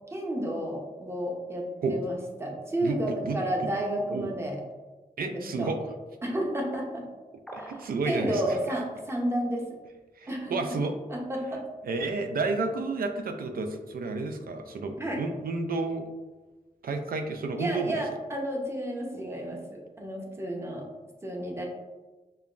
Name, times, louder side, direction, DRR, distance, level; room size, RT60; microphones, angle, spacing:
voice 1, 0.1-4.6 5.2-5.7 6.2-7.0 7.6-7.7 8.1-9.6 10.3-10.6 11.1-11.6 15.0-15.2 17.6-20.8 21.2-21.7, right 1 dB, 15° right, -1 dB, 0.7 m, -31 dB
voice 2, 2.8-3.7 4.1-4.3 5.2-5.8 7.5-8.6 10.2-10.9 11.8-16.1 16.8-18.0, right 3 dB, 80° right, 6 dB, 0.4 m, -31 dB
sound 1, 7.5-8.0, equal, 5° left, 0.3 m, -43 dB
5.4 x 2.2 x 2.4 m, 1.2 s
wide cardioid pair, 120°, 15 cm